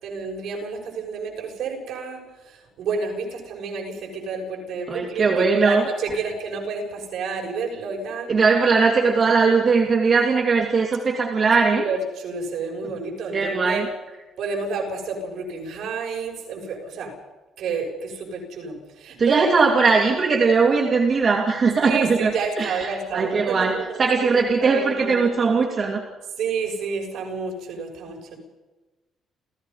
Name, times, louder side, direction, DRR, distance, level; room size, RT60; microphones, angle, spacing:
voice 1, 0.0-8.3 11.7-13.8 14.4-17.1 17.6-19.5 21.8-25.4 25.7-25.8 26.4-28.4, right 4 dB, 60° right, 0 dB, 6.9 m, -30 dB
voice 2, 4.9-5.8 8.3-11.8 13.3-13.9 19.2-26.0, right 4 dB, 30° right, 1 dB, 2.4 m, -20 dB
30.0 x 16.0 x 5.6 m, 1.1 s
cardioid pair, 165°, 0 cm